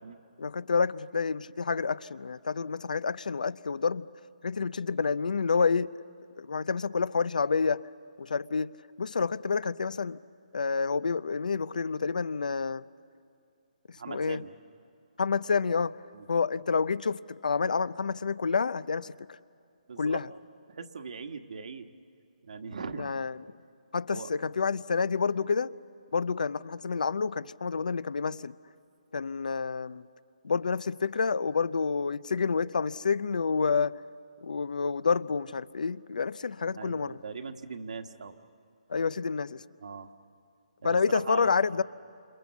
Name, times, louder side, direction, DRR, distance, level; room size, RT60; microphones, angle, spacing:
voice 1, 0.4-4.0 4.4-5.9 6.4-7.8 8.2-8.7 9.0-10.2 10.5-12.8 14.1-14.4 15.2-16.0 16.3-19.1 20.0-20.3 23.0-23.3 23.9-25.7 26.1-28.5 29.1-30.0 30.4-34.0 34.4-37.1 38.9-39.6 40.8-41.8, left 5 dB, 75° left, 0.6 m, -28 dB
voice 2, 14.0-14.5 16.1-16.3 19.9-20.2 20.7-21.9 22.4-23.1 24.1-24.3 36.7-38.4 39.8-40.1 40.8-41.8, right 5 dB, 60° right, 1.4 m, -40 dB
28.5 x 28.0 x 7.2 m
hypercardioid pair, 165°, 4 cm